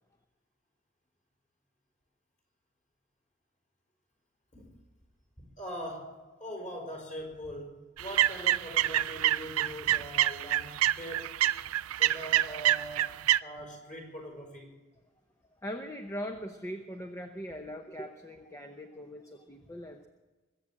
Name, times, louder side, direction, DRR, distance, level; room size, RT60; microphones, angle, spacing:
voice 1, 5.4-6.1 6.4-7.7 8.0-11.3 12.0-14.7 19.5-19.6, equal, 35° left, 0 dB, 5.1 m, -42 dB
sound 1, 8.0-13.4, right 13 dB, 90° right, 0.4 m, -27 dB
voice 2, 15.6-20.1, equal, 15° left, 4 dB, 0.7 m, -40 dB
22.0 x 8.6 x 7.6 m, 1.2 s
head